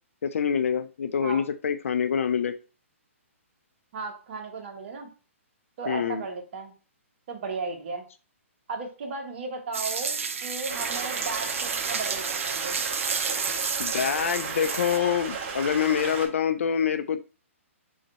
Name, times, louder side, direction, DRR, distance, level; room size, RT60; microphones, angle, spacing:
voice 1, 0.2-2.5 5.9-6.2 13.8-17.2, left 7 dB, 70° left, 10 dB, 0.4 m, -26 dB
voice 2, 3.9-5.1 5.8-6.7 7.3-8.0 8.7-12.8, right 4 dB, 50° right, 2 dB, 1.2 m, -35 dB
sound 1, 9.7-15.0, right 5 dB, 70° right, 0.6 m, -31 dB
Stream, 10.7-16.3, right 5 dB, 30° right, 1.2 m, -34 dB
3.8 x 3.2 x 4.1 m, 0.36 s
hypercardioid pair, 135°, 7 cm